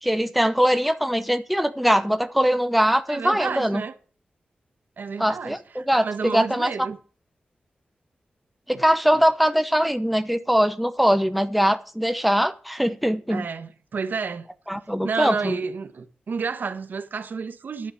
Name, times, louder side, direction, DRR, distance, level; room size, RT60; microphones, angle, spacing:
voice 1, 0.0-3.8 5.2-6.9 8.7-13.5 14.7-15.6, equal, ahead, 0.9 m, -22 dB
voice 2, 3.1-3.9 5.0-7.0 8.7-8.8 13.3-14.5 15.0-17.9, right 5 dB, 70° right, 1.2 m, -31 dB
11.0 x 7.0 x 8.4 m
wide cardioid pair, 85°, 3 cm